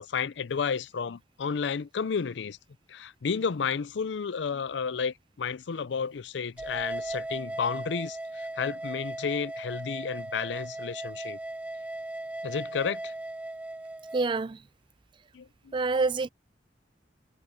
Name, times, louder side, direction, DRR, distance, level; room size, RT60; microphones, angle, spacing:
voice 1, 0.0-2.6 2.9-11.4 12.4-13.1 15.3-15.7, left 6 dB, 80° left, 0.5 m, -32 dB
sound 1, 6.6-14.3, right 2 dB, 10° right, 1.0 m, -37 dB
voice 2, 14.1-14.6 15.7-16.3, right 3 dB, 25° right, 0.4 m, -27 dB
head